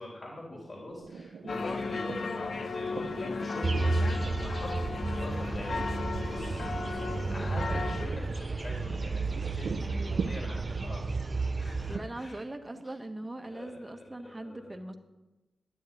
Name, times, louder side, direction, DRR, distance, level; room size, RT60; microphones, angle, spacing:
voice 1, 0.0-11.2 11.6-12.4 12.8-12.9 13.4-14.7, left 1 dB, 40° left, -1 dB, 3.6 m, -43 dB
sound 1, 0.9-13.9, right 5 dB, 80° right, 0.7 m, -44 dB
sound 2, 1.5-8.1, left 4 dB, 55° left, 1.1 m, -35 dB
sound 3, 3.6-12.0, right 3 dB, 30° right, 0.5 m, -32 dB
voice 2, 9.8-10.3 11.9-15.0, right 1 dB, 15° right, 6 dB, 1.4 m, -41 dB
12.5 x 10.0 x 9.2 m, 1.1 s
wide cardioid pair, 135°, 0 cm